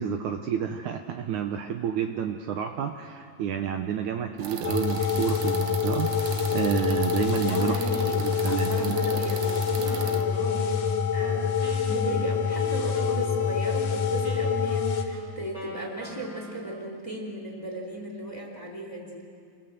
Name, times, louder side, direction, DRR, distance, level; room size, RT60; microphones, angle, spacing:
voice 1, 0.0-6.1 6.5-7.8 8.2-9.2, right 8 dB, 90° right, 5 dB, 1.7 m, -29 dB
sound 1, 4.4-10.2, right 7 dB, 65° right, 1.9 m, -37 dB
sound 2, 4.6-15.0, left 7 dB, 65° left, 3.4 m, -26 dB
voice 2, 7.5-19.3, right 2 dB, 10° left, 0 dB, 3.2 m, -36 dB
Wind instrument woodwind instrument, 9.8-17.0, equal, 5° right, 2.3 m, -44 dB
28.0 x 21.5 x 8.0 m, 2.2 s
omnidirectional pair, 4.8 m